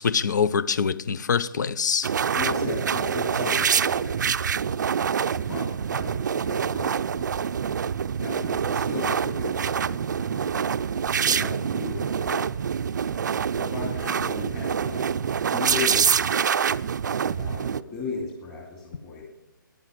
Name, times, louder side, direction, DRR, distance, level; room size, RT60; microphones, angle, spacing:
voice 1, 0.0-2.1, left 6 dB, 55° left, 0.7 m, -24 dB
sound 1, 2.0-17.8, right 7 dB, 60° right, 0.5 m, -26 dB
voice 2, 2.3-4.6 5.2-7.5 8.2-10.5 11.3-12.4 13.5-15.0 15.5-16.4 17.2-19.3, left 4 dB, 20° left, 2.5 m, -36 dB
14.0 x 10.5 x 7.5 m
hypercardioid pair, 160°, 11 cm